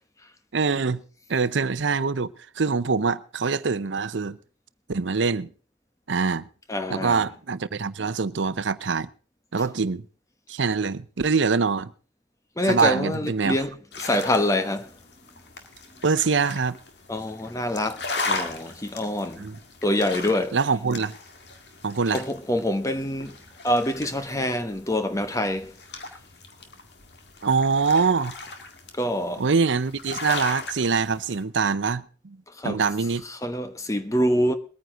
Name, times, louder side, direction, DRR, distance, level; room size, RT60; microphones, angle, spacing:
voice 1, 0.5-1.0 1.3-4.4 4.9-5.5 6.1-6.5 6.9-9.1 9.5-10.0 10.5-11.9 12.7-13.6 16.0-16.8 19.4-19.6 20.5-21.1 21.8-22.2 27.4-28.4 29.4-32.4 32.6-33.2, right 4 dB, 80° right, 0.7 m, -24 dB
voice 2, 6.7-7.2 12.6-13.7 14.0-14.9 17.1-19.4 19.8-20.6 22.1-23.4 23.6-25.7 29.0-29.4 32.6-32.8 33.4-34.5, left 1 dB, 15° left, 1.0 m, -25 dB
sound 1, 13.9-31.4, left 3 dB, 60° left, 2.0 m, -38 dB
22.0 x 9.4 x 3.7 m
head